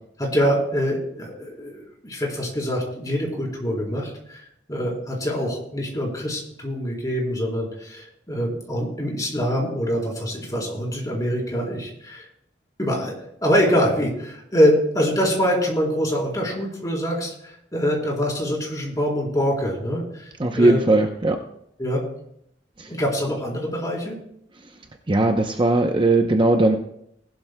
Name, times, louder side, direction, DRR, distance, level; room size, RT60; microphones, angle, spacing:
voice 1, 0.2-12.3 12.8-13.1 13.4-20.8 21.8-22.0 22.9-24.2, equal, 20° left, -2 dB, 3.6 m, -24 dB
voice 2, 20.4-21.4 22.8-22.9 25.1-26.8, right 2 dB, 30° right, 4 dB, 0.7 m, -18 dB
19.5 x 12.0 x 2.2 m, 0.73 s
head